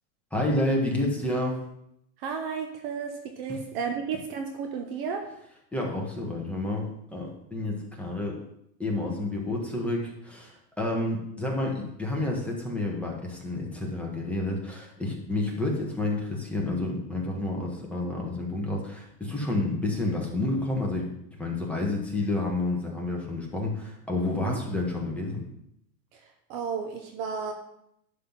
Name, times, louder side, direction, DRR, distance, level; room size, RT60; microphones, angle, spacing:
voice 1, 0.3-1.6 5.7-8.4 8.8-21.1 21.4-25.4, left 2 dB, 5° left, -2 dB, 1.4 m, -29 dB
voice 2, 2.2-5.3 24.3-24.6 26.1-26.2 26.5-27.5, right 6 dB, 35° right, 5 dB, 1.0 m, -33 dB
11.0 x 3.8 x 7.3 m, 0.77 s
hypercardioid pair, 145°, 50 cm